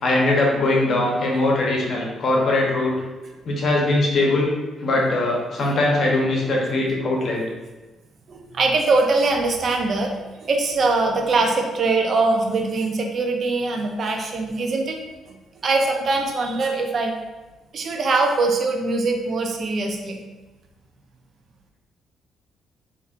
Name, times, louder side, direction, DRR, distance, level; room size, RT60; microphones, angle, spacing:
voice 1, 0.0-2.9 3.4-4.5 4.8-7.4, left 2 dB, 55° left, -2 dB, 0.9 m, -21 dB
voice 2, 8.3-15.0 15.6-17.1 17.7-20.2, right 3 dB, 50° right, 3 dB, 0.5 m, -22 dB
4.1 x 2.6 x 2.5 m, 1.2 s
cardioid pair, 90°, 0 cm